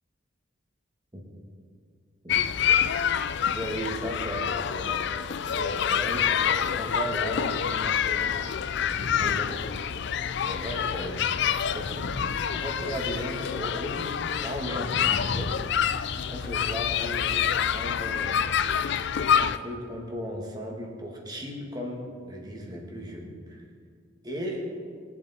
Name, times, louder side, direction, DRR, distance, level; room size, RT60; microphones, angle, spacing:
sound 1, 2.3-19.6, left 8 dB, 60° left, 0.4 m, -27 dB
voice 1, 3.5-5.1 5.5-8.5 9.0-9.8 10.4-11.3 11.7-12.2 12.5-14.1 14.4-15.6 16.3-18.6 19.4-23.6 24.2-24.7, equal, 20° right, 0 dB, 2.0 m, -36 dB
sound 2, 8.7-9.6 9.9-10.1 11.6-13.2 14.6-15.9, left 2 dB, 90° left, 0.9 m, -36 dB
22.0 x 7.5 x 4.3 m, 2.1 s
head